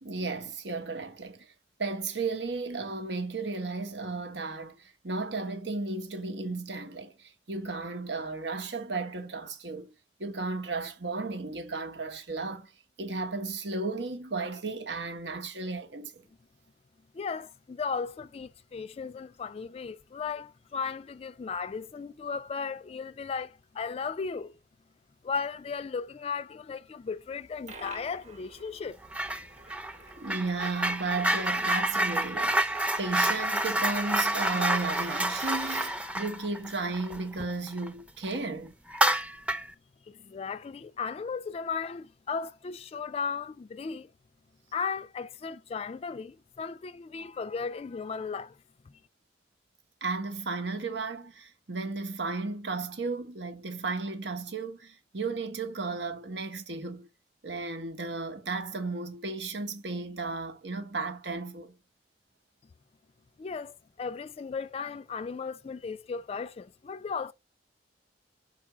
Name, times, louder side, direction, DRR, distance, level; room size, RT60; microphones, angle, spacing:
voice 1, 0.0-1.5 1.8-9.9 10.2-12.7 13.0-16.2 30.2-38.7 50.0-57.1 57.4-61.7, right 3 dB, 85° right, 1.4 m, -34 dB
voice 2, 17.1-24.6 25.2-29.0 40.1-44.1 44.7-48.6 48.9-49.0 63.4-67.3, left 5 dB, 35° left, 0.3 m, -36 dB
Coin (dropping), 27.3-36.2, right 4 dB, 40° right, 1.1 m, -48 dB
sound 1, 29.1-29.4 29.7-37.9 38.2-38.4 38.9-39.7, right 1 dB, 5° right, 0.6 m, -28 dB
5.9 x 4.5 x 6.0 m
head